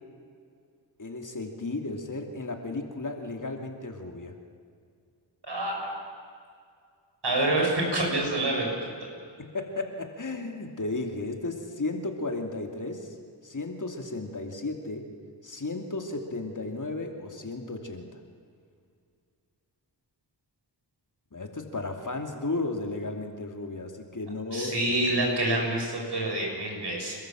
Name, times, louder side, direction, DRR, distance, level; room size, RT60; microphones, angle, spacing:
voice 1, 1.0-4.4 9.4-13.1 13.4-15.1 15.4-18.2 21.3-24.9, left 2 dB, 40° left, 3 dB, 2.8 m, -34 dB
voice 2, 5.5-5.9 7.2-9.1 24.5-27.1, right 1 dB, 60° right, 0 dB, 7.2 m, -27 dB
29.5 x 13.0 x 7.7 m, 2.2 s
cardioid pair, 45°, 45 cm